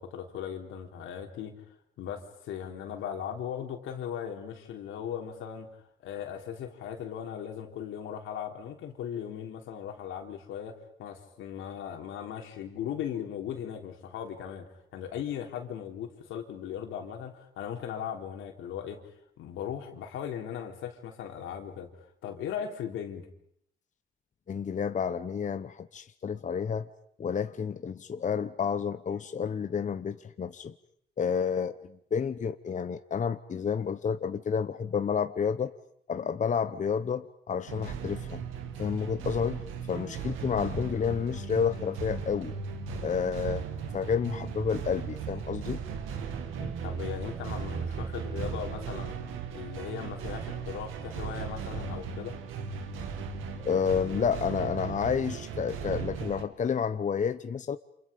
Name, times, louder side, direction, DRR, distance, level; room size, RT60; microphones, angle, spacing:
voice 1, 0.0-1.6 2.0-19.0 19.4-23.3 46.6-49.2 49.5-52.4, left 9 dB, 85° left, 3 dB, 3.6 m, -38 dB
voice 2, 24.5-26.9 27.2-30.7 31.2-35.7 36.1-38.4 38.8-39.6 39.9-42.6 43.0-43.7 43.9-45.8 53.6-57.8, left 6 dB, 40° left, 11 dB, 1.0 m, -30 dB
sound 1, 37.7-56.4, right 6 dB, 90° right, 2.2 m, -37 dB
29.0 x 27.5 x 5.3 m, 0.71 s
cardioid pair, 90°, 20 cm